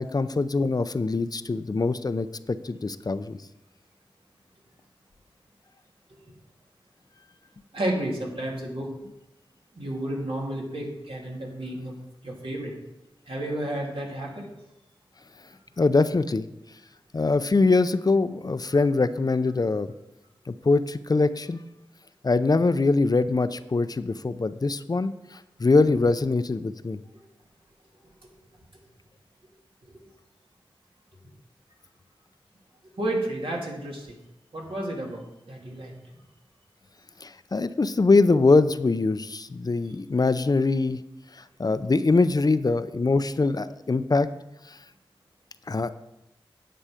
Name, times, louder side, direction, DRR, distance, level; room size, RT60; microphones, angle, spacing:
voice 1, 0.0-3.4 15.8-16.5 17.1-19.9 20.5-21.6 22.2-27.0 37.2-41.0 41.3-44.3 44.7-44.8 45.7-45.9, left 3 dB, 45° left, 12 dB, 0.5 m, -23 dB
voice 2, 7.7-8.9 9.7-11.9 12.2-12.7 13.3-14.5 29.9-30.0 33.0-34.1 34.5-35.9, right 1 dB, 75° right, -2 dB, 2.7 m, -31 dB
10.0 x 7.9 x 5.0 m, 0.91 s
wide cardioid pair, 55°, 9 cm